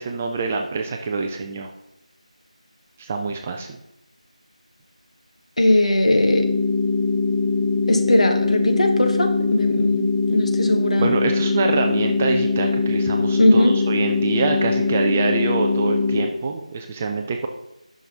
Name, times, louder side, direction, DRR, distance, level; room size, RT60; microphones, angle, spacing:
voice 1, 0.0-1.7 3.0-3.7 11.0-17.5, right 4 dB, 15° right, 4 dB, 0.4 m, -25 dB
voice 2, 5.6-6.5 7.9-11.1 13.3-13.8, left 1 dB, 65° left, 4 dB, 1.5 m, -19 dB
sound 1, 6.2-16.2, left 4 dB, 10° left, 1.6 m, -22 dB
10.5 x 6.1 x 3.9 m, 0.89 s
figure-of-eight pair, 165°, 4 cm